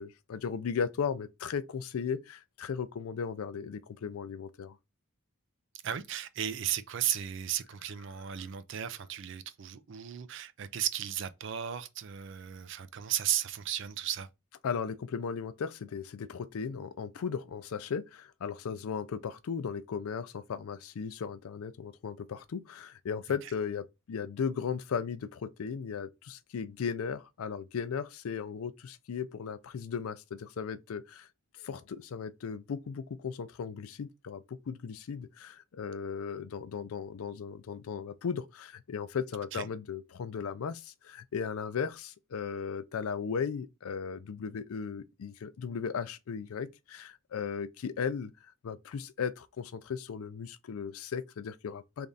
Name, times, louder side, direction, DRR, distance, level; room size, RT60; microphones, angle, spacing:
voice 1, 0.0-4.8 14.6-31.3 31.6-52.1, left 6 dB, 80° left, 0.4 m, -36 dB
voice 2, 5.8-14.3 23.4-23.5 39.5-39.7, right 10 dB, 55° right, 0.4 m, -35 dB
3.4 x 2.4 x 3.9 m
head